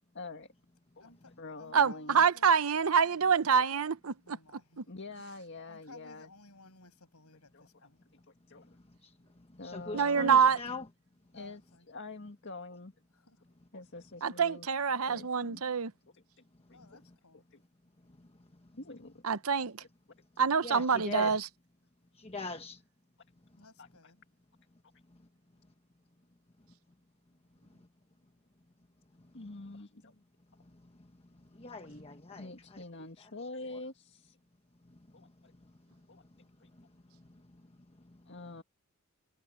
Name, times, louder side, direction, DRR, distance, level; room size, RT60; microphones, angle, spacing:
voice 1, 0.2-0.5 1.0-1.1 1.4-2.2 4.9-6.3 7.5-7.7 8.1-8.2 8.5-8.7 9.6-10.3 11.3-11.6 11.9-12.9 13.7-14.7 15.1-15.6 16.1-16.2 16.7-17.0 17.5-17.6 18.7-19.2 23.8-23.9 29.3-30.2 31.7-31.8 32.4-34.4 35.1-35.5 36.1-36.2 36.6-36.7 38.3-38.6, left 3 dB, 55° left, 1.9 m, -46 dB
voice 2, 1.0-2.5 3.0-3.3 4.3-4.9 5.7-8.0 11.3-11.9 13.1-13.4 16.7-17.5 23.6-24.2, left 3 dB, 85° left, 7.4 m, -57 dB
voice 3, 1.7-4.1 9.9-10.6 14.2-15.9 19.2-19.8 20.4-21.5, right 6 dB, 70° right, 0.8 m, -26 dB
voice 4, 8.5-10.9 16.7-16.8 18.0-18.7 20.6-21.4 22.1-22.8 25.1-25.3 27.7-27.9 29.2-29.4 30.6-32.8 33.2-33.3 33.7-33.8 34.9-38.3, left 3 dB, 25° left, 1.2 m, -45 dB
head